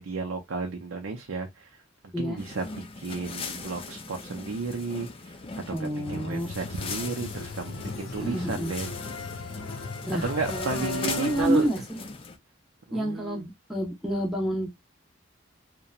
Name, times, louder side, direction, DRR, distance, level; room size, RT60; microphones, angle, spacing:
voice 1, 0.0-1.8 2.2-5.4 5.7-8.9 10.2-11.7 12.9-13.5, right 4 dB, 75° right, 0.5 m, -33 dB
sound 1, 2.4-12.4, left 4 dB, 25° left, 0.4 m, -39 dB
voice 2, 5.7-6.5 8.2-8.7 10.1-11.8 12.9-14.7, equal, ahead, 0.7 m, -29 dB
sound 2, 6.1-11.7, left 2 dB, 80° left, 0.6 m, -37 dB
2.8 x 2.2 x 2.3 m
head